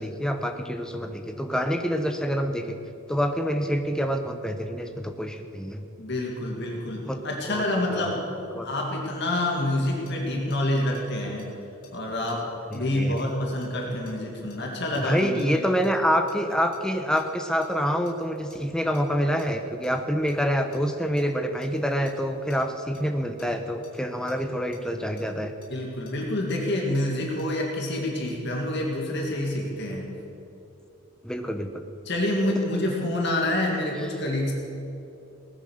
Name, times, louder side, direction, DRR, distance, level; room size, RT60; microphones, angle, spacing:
voice 1, 0.0-2.8 3.1-5.8 6.7-7.2 7.5-8.1 8.5-8.7 12.7-13.1 14.9-25.5 31.2-31.8, equal, 5° left, 5 dB, 0.8 m, -27 dB
voice 2, 6.0-8.3 8.6-11.4 11.9-12.4 12.7-15.6 25.7-30.1 32.1-34.5, left 1 dB, 50° left, -1 dB, 2.2 m, -27 dB
sound 1, 10.1-15.9 16.3-18.6 18.9-19.0 19.4-19.9 20.3-23.5 23.8-24.0 24.3-24.4 24.7-24.8 25.2-27.9 28.3-28.4, left 3 dB, 90° left, 3.8 m, -51 dB
18.5 x 9.7 x 6.5 m, 2.7 s
head